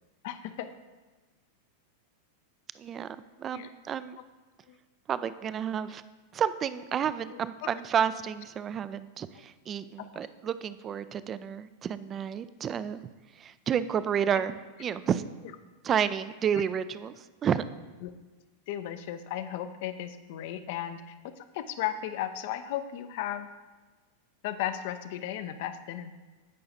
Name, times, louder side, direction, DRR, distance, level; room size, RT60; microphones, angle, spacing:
voice 1, 0.2-0.7 3.5-3.7 4.7-4.8 7.3-7.7 10.0-10.1 18.0-18.1 18.7-23.5 24.4-26.1, left 11 dB, 50° left, 10 dB, 0.5 m, -35 dB
voice 2, 2.8-4.2 5.1-6.0 6.3-13.0 13.4-15.2 15.8-17.6, right 8 dB, 25° right, 14 dB, 0.3 m, -31 dB
15.5 x 5.7 x 2.6 m, 1.2 s
figure-of-eight pair, 90°, 0 cm